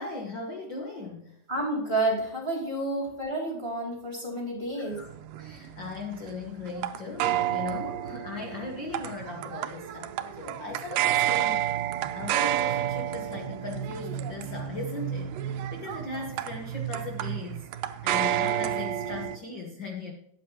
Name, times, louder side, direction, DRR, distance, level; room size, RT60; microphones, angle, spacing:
voice 1, 0.0-1.3 4.7-5.1 5.4-11.7 12.1-17.7 18.0-20.1, left 3 dB, 60° left, 1 dB, 1.2 m, -38 dB
voice 2, 1.5-5.0, right 2 dB, 20° right, 0 dB, 2.4 m, -30 dB
sound 1, 4.9-19.4, right 12 dB, 80° right, 2.2 m, -30 dB
13.0 x 9.4 x 2.9 m, 0.77 s
omnidirectional pair, 4.0 m